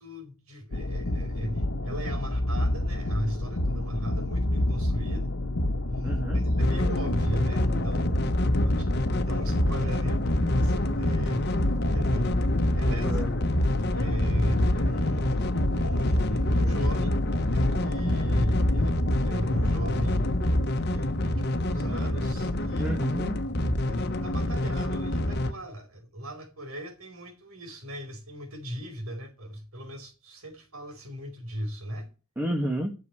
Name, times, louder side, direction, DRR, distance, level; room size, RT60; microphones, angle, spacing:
voice 1, 0.0-5.3 5.9-10.2 10.5-11.5 11.8-12.3 12.7-13.2 13.9-15.4 15.7-17.2 17.5-20.3 20.8-23.0 23.8-32.1, equal, 80° right, 4.8 m, -37 dB
sound 1, 0.7-20.6, left 1 dB, 75° left, 1.3 m, -28 dB
voice 2, 6.0-6.4 12.9-13.4 22.8-23.5 32.4-32.9, right 1 dB, 10° right, 1.7 m, -31 dB
sound 2, 6.6-25.5, left 1 dB, 50° left, 1.3 m, -28 dB
11.5 x 6.9 x 8.8 m
head